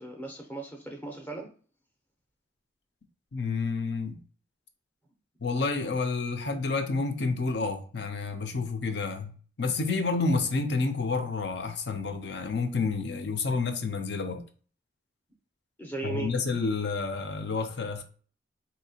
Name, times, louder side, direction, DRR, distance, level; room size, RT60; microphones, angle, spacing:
voice 1, 0.0-1.5 15.8-16.3, right 3 dB, 10° left, 0.6 m, -37 dB
voice 2, 3.3-4.2 5.4-14.4 16.0-18.0, left 4 dB, 60° left, 0.6 m, -29 dB
4.1 x 2.8 x 2.7 m
head